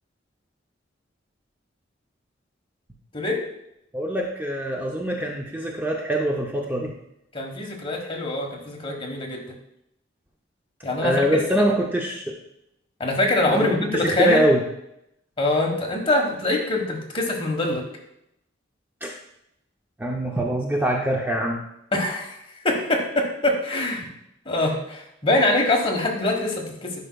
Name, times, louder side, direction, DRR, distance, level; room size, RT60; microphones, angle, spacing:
voice 1, 3.9-6.9 11.0-12.3 13.5-14.6 19.0-19.1 20.0-21.6 24.0-24.1, right 1 dB, 10° right, 0 dB, 0.5 m, -24 dB
voice 2, 7.3-9.5 10.8-11.2 13.0-14.4 15.4-17.8 21.9-22.4 22.6-24.0 24.4-26.9, left 2 dB, 30° left, 0 dB, 1.3 m, -24 dB
10.0 x 5.4 x 2.3 m, 0.80 s
head